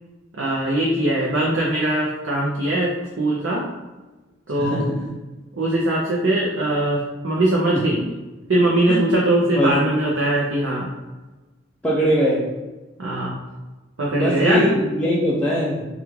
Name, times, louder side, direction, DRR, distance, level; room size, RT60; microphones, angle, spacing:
voice 1, 0.4-2.9 3.2-3.6 4.5-4.8 5.6-8.0 8.5-10.9 13.0-13.3 14.0-14.6, right 1 dB, 80° right, -4 dB, 0.6 m, -21 dB
voice 2, 4.6-5.1 7.7-7.9 8.9-9.1 9.5-9.8 11.8-12.5 14.1-15.9, equal, 5° left, -6 dB, 0.4 m, -21 dB
3.5 x 2.4 x 3.0 m, 1.2 s
head